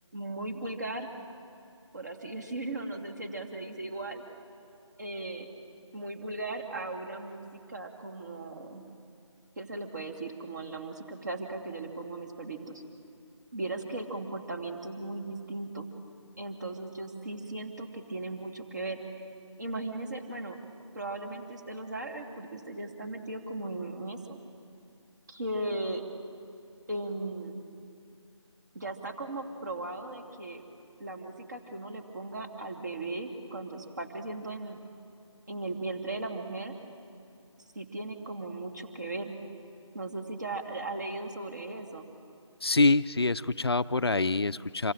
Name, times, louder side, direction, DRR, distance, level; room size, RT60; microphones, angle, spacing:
voice 1, 0.1-1.1 1.9-4.2 5.0-5.5 5.9-8.8 9.6-12.8 13.5-15.9 16.4-19.3 19.6-20.6 20.9-24.4 25.3-26.0 26.9-27.6 28.7-30.6 31.0-34.8 35.5-36.8 37.7-39.3 39.9-42.1, right 2 dB, 35° right, 2 dB, 2.6 m, -37 dB
voice 2, 42.6-44.9, left 3 dB, 50° left, 14 dB, 0.6 m, -25 dB
27.0 x 23.5 x 8.9 m, 2.7 s
figure-of-eight pair, 165°, 16 cm